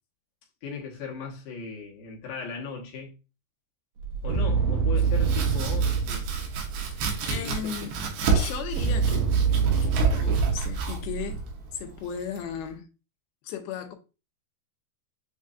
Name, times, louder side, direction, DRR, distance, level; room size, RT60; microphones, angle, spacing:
voice 1, 0.6-3.1 4.2-6.3 7.3-7.9, left 5 dB, 65° left, 2.3 m, -37 dB
sound 1, 4.0-7.2 8.5-11.8, right 6 dB, 70° right, 2.7 m, -26 dB
Domestic sounds home sounds, 5.0-12.7, right 4 dB, 85° right, 3.0 m, -30 dB
voice 2, 6.9-8.0 8.3-9.3 9.8-11.4 11.7-12.9 13.4-14.0, left 8 dB, 85° left, 2.5 m, -36 dB
7.3 x 2.5 x 2.5 m
omnidirectional pair, 4.6 m